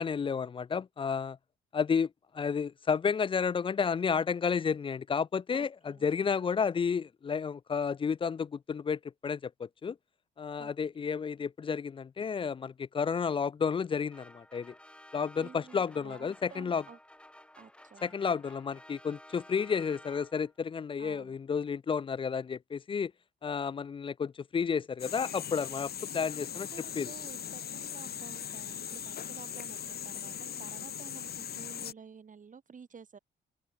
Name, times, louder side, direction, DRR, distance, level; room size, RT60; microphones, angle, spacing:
voice 1, 0.0-1.4 1.7-10.0 10.4-14.7 15.1-16.8 18.0-23.1 23.4-26.7 27.0-27.1, left 6 dB, 25° left, 0.4 m, -31 dB
voice 2, 5.5-6.2 10.6-10.9 15.4-17.0 17.6-18.2 21.0-21.4 26.5-30.3 30.6-33.2, right 6 dB, 40° right, 4.4 m, -51 dB
sound 1, 14.1-20.6, left 1 dB, 5° left, 2.7 m, -54 dB
sound 2, 25.0-31.9, left 9 dB, 50° left, 1.3 m, -40 dB
open air
cardioid pair, 90°, 20 cm